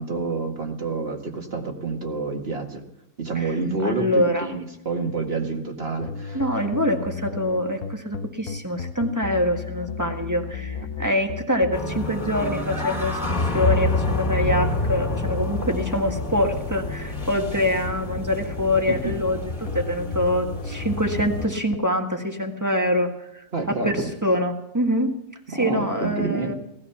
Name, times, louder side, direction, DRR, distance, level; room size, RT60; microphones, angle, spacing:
voice 1, 0.0-2.8 3.2-6.4 18.9-19.1 23.5-24.1 25.5-26.5, right 3 dB, 45° right, 3 dB, 2.1 m, -28 dB
voice 2, 3.8-4.5 6.3-25.1 25.5-26.5, left 1 dB, 15° right, 3 dB, 1.6 m, -25 dB
sound 1, 6.0-21.8, left 6 dB, 70° left, 1.2 m, -35 dB
sound 2, 11.7-21.5, left 1 dB, 35° left, 2.9 m, -28 dB
18.0 x 14.0 x 5.8 m, 0.82 s
omnidirectional pair, 1.5 m